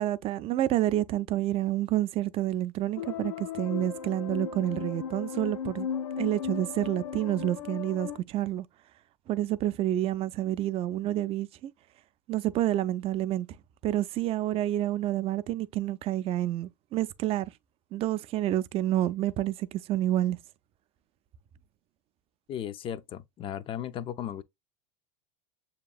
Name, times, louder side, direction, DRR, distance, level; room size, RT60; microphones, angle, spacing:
voice 1, 0.0-5.9 6.2-8.7 9.3-11.7 12.3-13.5 13.8-17.5 17.9-20.4, right 13 dB, 35° right, 0.4 m, -29 dB
sound 1, 3.0-8.2, left 7 dB, 85° left, 0.5 m, -36 dB
voice 2, 22.5-24.4, left 10 dB, 35° left, 0.4 m, -36 dB
6.8 x 2.9 x 2.3 m
hypercardioid pair, 105°, 16 cm